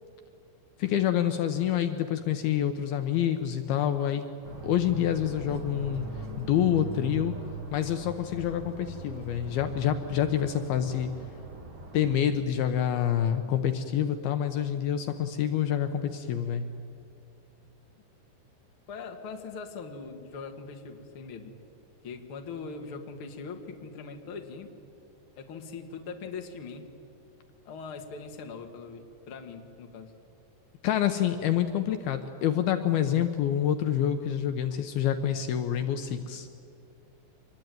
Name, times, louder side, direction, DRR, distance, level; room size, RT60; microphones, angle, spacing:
voice 1, 0.8-4.3 4.6-6.1 6.4-7.3 7.7-11.1 11.9-16.7 30.8-36.5, left 10 dB, 75° left, 8 dB, 2.6 m, -27 dB
sound 1, 4.4-12.2, right 2 dB, 35° right, 3.3 m, -40 dB
voice 2, 18.9-21.5 22.0-24.7 25.4-26.8 27.7-30.1, left 4 dB, 40° left, 4 dB, 2.2 m, -41 dB
25.5 x 21.5 x 9.3 m, 2.4 s
omnidirectional pair, 4.8 m